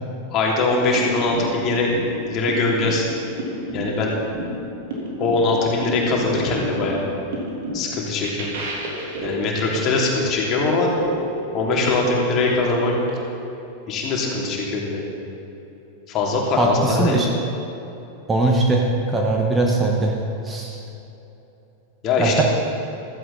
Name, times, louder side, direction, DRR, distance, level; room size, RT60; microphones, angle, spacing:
voice 1, 0.3-1.9 2.3-3.0 3.7-4.1 5.2-7.0 7.7-8.5 9.2-10.9 11.5-12.9 13.9-15.1 16.1-17.1 22.0-22.4, left 3 dB, 35° left, -2 dB, 3.2 m, -22 dB
sound 1, 0.7-13.1, right 1 dB, 55° right, 3.5 m, -32 dB
voice 2, 16.6-17.3 18.3-20.2 20.4-20.8 22.2-22.4, right 2 dB, 15° right, 0 dB, 1.6 m, -20 dB
15.5 x 15.0 x 4.2 m, 3.0 s
figure-of-eight pair, 90°, 0 cm